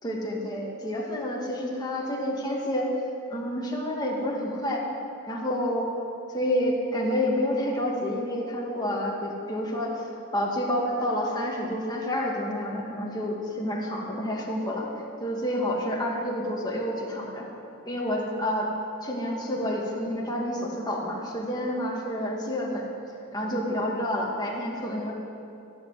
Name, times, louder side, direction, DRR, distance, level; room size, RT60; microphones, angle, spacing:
voice 1, 0.0-2.9 3.3-4.8 5.3-5.9 6.3-14.9 15.2-17.5 17.9-18.7 19.0-22.9 23.3-25.1, equal, 20° left, -3 dB, 2.3 m, -29 dB
15.0 x 7.2 x 9.6 m, 2.7 s
head